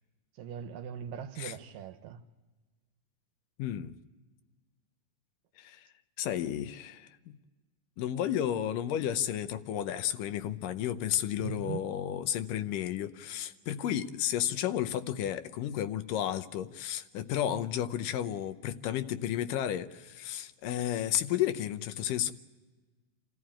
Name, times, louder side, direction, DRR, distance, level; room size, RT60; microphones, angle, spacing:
voice 1, 0.4-2.2 11.4-11.9, right 8 dB, 75° right, 2.5 m, -40 dB
voice 2, 3.6-3.9 5.6-5.9 6.2-7.1 8.0-22.3, left 11 dB, 75° left, 2.3 m, -32 dB
28.0 x 14.5 x 8.7 m
omnidirectional pair, 4.1 m